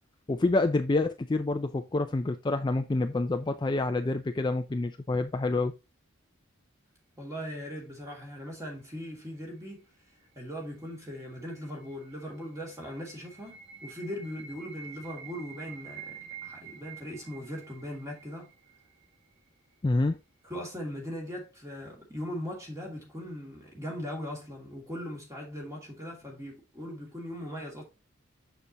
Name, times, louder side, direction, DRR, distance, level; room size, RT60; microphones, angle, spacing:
voice 1, 0.3-5.7 19.8-20.2, left 2 dB, 20° left, 0.3 m, -27 dB
voice 2, 7.2-9.8 10.3-18.5 20.4-27.8, equal, 15° right, 2.6 m, -39 dB
sound 1, 10.4-19.4, right 7 dB, 60° right, 1.9 m, -49 dB
6.9 x 6.6 x 2.9 m
head